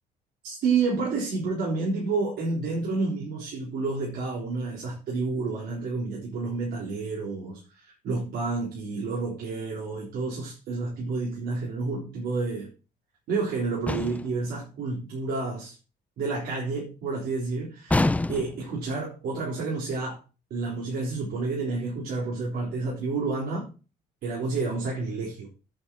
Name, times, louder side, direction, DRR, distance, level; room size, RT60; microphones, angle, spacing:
voice 1, 0.4-12.7 13.3-15.8 16.2-20.2 20.5-23.7 24.2-25.5, right 4 dB, 70° right, -2 dB, 3.8 m, -30 dB
sound 1, 13.9-14.4 17.9-18.7, left 2 dB, 10° left, 0.4 m, -25 dB
8.2 x 6.2 x 7.0 m, 0.34 s
cardioid pair, 110°, 17 cm